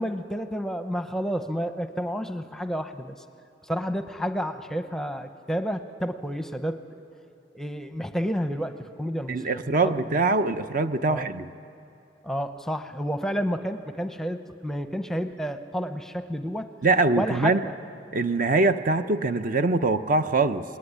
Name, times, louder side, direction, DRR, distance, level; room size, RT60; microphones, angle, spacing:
voice 1, 0.0-3.2 3.6-6.8 7.5-9.9 11.1-11.3 12.2-16.7 17.2-17.7, equal, 5° left, 8 dB, 0.8 m, -30 dB
voice 2, 9.3-11.5 16.8-17.6 18.1-20.6, right 3 dB, 45° right, 9 dB, 0.7 m, -23 dB
26.5 x 20.0 x 10.0 m, 2.7 s
head